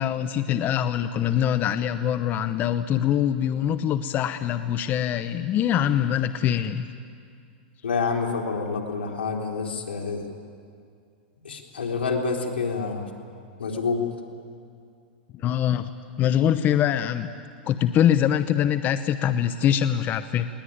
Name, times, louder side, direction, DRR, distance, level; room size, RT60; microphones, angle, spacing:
voice 1, 0.0-6.9 15.4-15.9 16.2-17.3 17.7-20.5, left 10 dB, 30° left, 11 dB, 0.8 m, -23 dB
voice 2, 7.8-10.3 11.4-13.1 13.6-14.1, left 4 dB, 90° left, 1 dB, 3.6 m, -27 dB
20.5 x 19.5 x 9.5 m, 2.3 s
hypercardioid pair, 125°, 6 cm